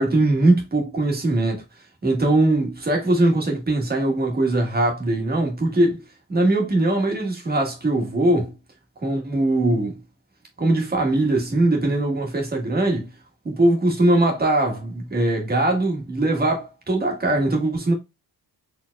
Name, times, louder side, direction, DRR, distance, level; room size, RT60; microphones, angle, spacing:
voice 1, 0.0-1.6 2.0-6.0 6.3-8.5 9.0-10.0 10.6-13.1 13.4-17.9, right 2 dB, 20° right, 1.6 m, -21 dB
4.6 x 3.8 x 2.3 m
cardioid pair, 155°, 44 cm